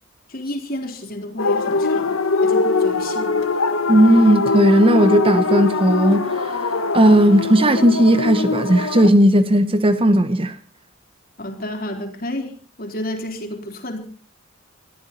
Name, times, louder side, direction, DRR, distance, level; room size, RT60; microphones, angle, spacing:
voice 1, 0.3-2.1 2.4-3.4 11.4-14.1, left 1 dB, 45° left, 3.7 m, -31 dB
sound 1, 1.4-9.1, left 3 dB, 85° left, 1.5 m, -22 dB
voice 2, 3.9-6.6 6.9-10.6, right 1 dB, 25° right, 0.9 m, -15 dB
21.5 x 14.0 x 4.3 m
head